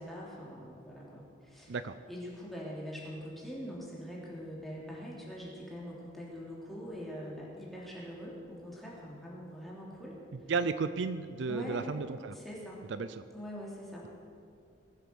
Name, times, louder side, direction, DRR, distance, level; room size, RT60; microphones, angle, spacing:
voice 1, 0.0-1.8 2.1-10.2 11.5-12.0 12.3-12.8 13.3-14.1, equal, ahead, -5 dB, 3.1 m, -43 dB
voice 2, 1.7-2.0 10.5-12.3 12.9-13.2, right 4 dB, 65° right, 13 dB, 0.5 m, -33 dB
20.0 x 8.0 x 6.9 m, 2.4 s
head